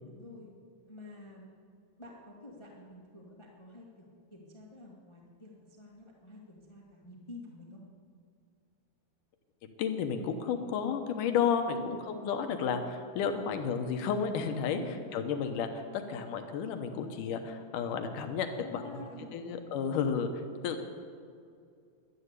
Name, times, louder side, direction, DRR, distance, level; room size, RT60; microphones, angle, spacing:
voice 1, 0.1-0.5 0.9-1.4 2.0-4.0 4.3-7.8 10.5-10.6 11.6-12.1 14.6-15.1 18.5-19.8, left 2 dB, 45° left, -2 dB, 0.3 m, -49 dB
voice 2, 9.8-18.8 19.3-20.3 20.6-20.8, left 6 dB, 70° left, 6 dB, 2.2 m, -32 dB
11.5 x 11.0 x 8.1 m, 2.3 s
omnidirectional pair, 4.4 m